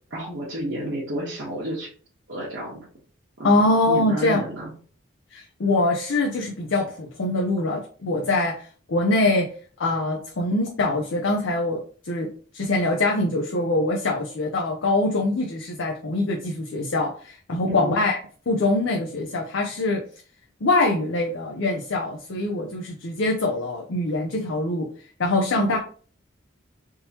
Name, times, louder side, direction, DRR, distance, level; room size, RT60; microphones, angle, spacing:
voice 1, 0.1-1.9 2.3-2.8 3.4-3.6 3.9-4.7 17.6-18.0 25.5-25.8, right 1 dB, 65° right, -8 dB, 1.1 m, -31 dB
voice 2, 3.4-4.4 5.3-9.5 9.8-18.2 18.5-20.0 20.6-24.9 25.2-25.8, left 2 dB, 80° left, 1 dB, 0.6 m, -23 dB
3.6 x 2.8 x 2.8 m, 0.42 s
head